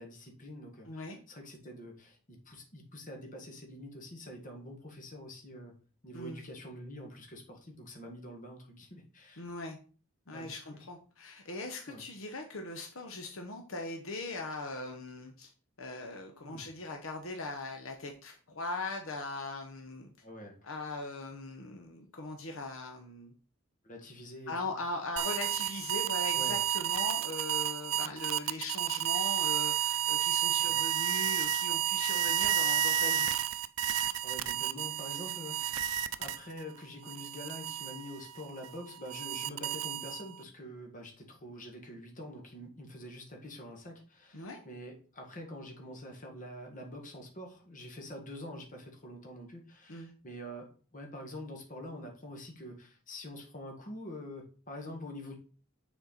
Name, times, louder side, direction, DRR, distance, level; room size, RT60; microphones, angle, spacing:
voice 1, 0.0-5.7 6.0-9.4 10.3-10.8 11.9-12.0 16.4-16.7 20.2-20.6 23.8-24.8 26.3-26.6 28.0-28.1 30.6-30.8 34.2-35.8 36.2-55.4, left 1 dB, 40° left, 2 dB, 1.7 m, -46 dB
voice 2, 0.9-1.2 6.1-6.4 9.4-9.8 10.3-15.5 15.8-20.1 20.6-23.3 24.5-33.3 44.3-44.6 49.9-50.1, left 2 dB, 70° left, 3 dB, 0.9 m, -40 dB
sound 1, 25.2-36.6 37.1-40.4, right 10 dB, 70° right, 0.4 m, -31 dB
6.7 x 4.4 x 4.2 m, 0.39 s
head